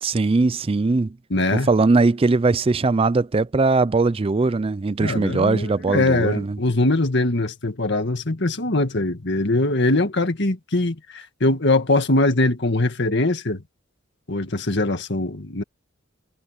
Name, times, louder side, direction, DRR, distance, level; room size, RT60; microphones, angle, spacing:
voice 1, 0.0-1.2 1.5-6.6, right 3 dB, 25° right, 0.4 m, -20 dB
voice 2, 1.3-1.7 5.0-13.6 14.3-15.6, left 2 dB, 60° left, 2.0 m, -22 dB
head